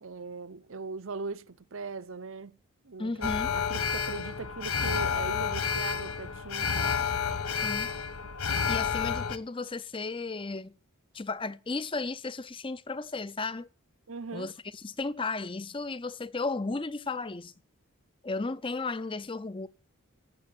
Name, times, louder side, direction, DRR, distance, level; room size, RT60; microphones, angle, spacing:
voice 1, 0.0-2.6 2.8-7.0 14.1-14.5, right 3 dB, 65° right, 0.8 m, -39 dB
voice 2, 3.0-3.5 7.6-7.9 8.7-10.8 11.1-13.7 14.3-17.5 18.2-19.7, left 3 dB, 25° left, 0.6 m, -34 dB
Alarm, 3.2-9.4, left 6 dB, 80° left, 1.1 m, -30 dB
17.0 x 7.0 x 8.2 m
head